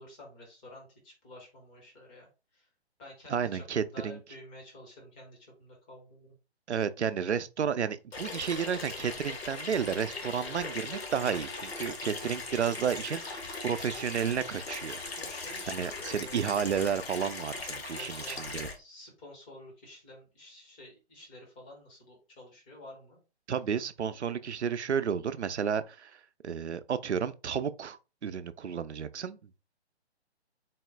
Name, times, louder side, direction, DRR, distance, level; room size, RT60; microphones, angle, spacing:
voice 1, 0.0-2.3 2.5-2.7 3.0-6.3 15.2-16.6 17.9-23.2, left 1 dB, 10° left, 0.5 m, -50 dB
voice 2, 3.3-4.2 6.7-15.0 15.7-18.7 23.5-26.1 26.4-29.6, right 7 dB, 80° right, 0.5 m, -32 dB
Water tap faucet / Sink (filling or washing), 8.1-18.8, left 3 dB, 65° left, 1.1 m, -39 dB
4.1 x 2.1 x 3.5 m
figure-of-eight pair, 135°, 33 cm